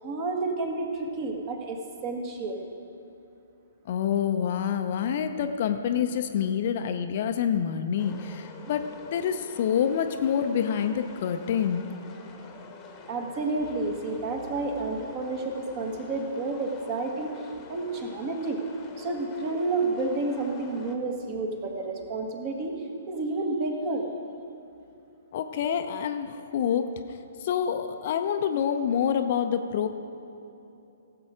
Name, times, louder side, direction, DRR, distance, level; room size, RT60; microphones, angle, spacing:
voice 1, 0.0-2.7 13.1-17.3 17.7-18.6 19.0-22.8 23.1-24.1, right 3 dB, 30° right, 3 dB, 1.6 m, -30 dB
voice 2, 3.9-11.8 25.3-26.9 27.4-29.9, left 8 dB, 45° left, 7 dB, 0.7 m, -27 dB
sound 1, 8.0-21.0, left 4 dB, 20° left, 1.2 m, -47 dB
17.0 x 7.8 x 4.9 m, 2.8 s
figure-of-eight pair, 120°, 0 cm